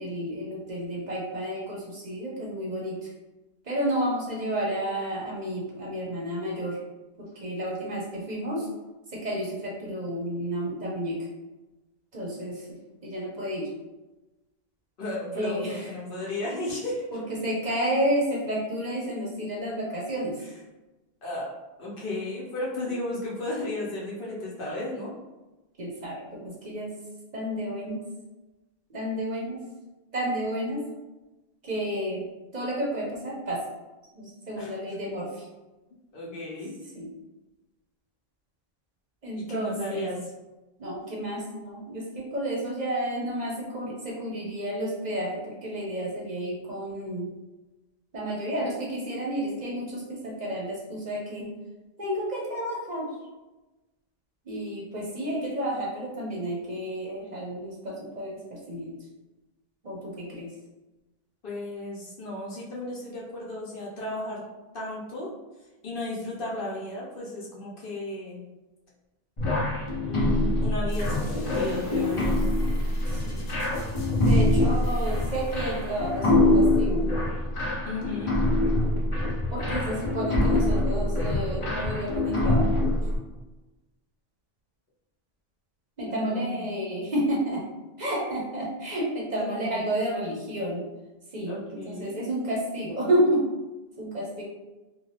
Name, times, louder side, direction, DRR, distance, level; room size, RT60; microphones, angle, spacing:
voice 1, 0.0-3.1 3.6-6.8 7.2-8.7 9.1-11.2 12.1-12.8 13.0-13.7 15.3-15.9 17.1-20.4 22.8-23.0 25.8-26.9 27.3-28.0 28.9-29.6 30.1-30.8 31.6-32.3 32.5-33.6 34.2-35.5 36.9-37.1 39.2-40.1 40.8-47.3 48.1-51.5 52.0-53.1 54.4-58.9 59.8-60.5 73.1-73.5 74.2-77.2 79.5-82.8 86.0-87.6 88.0-90.9 91.3-93.4 94.0-94.4, right 1 dB, 50° right, -4 dB, 0.7 m, -31 dB
voice 2, 15.0-17.0 20.4-20.5 21.2-21.5 21.8-25.1 34.6-34.8 36.1-36.7 39.3-40.2 61.4-64.4 64.7-65.3 65.8-68.5 70.0-72.5 77.8-78.4 86.0-86.7 89.3-89.8 91.5-92.2, left 2 dB, 60° left, -5 dB, 1.0 m, -34 dB
sound 1, 69.4-83.2, left 1 dB, 35° left, 0.7 m, -24 dB
sound 2, 70.9-78.5, left 1 dB, 85° left, 0.9 m, -45 dB
2.7 x 2.4 x 3.2 m, 1.1 s
omnidirectional pair, 1.1 m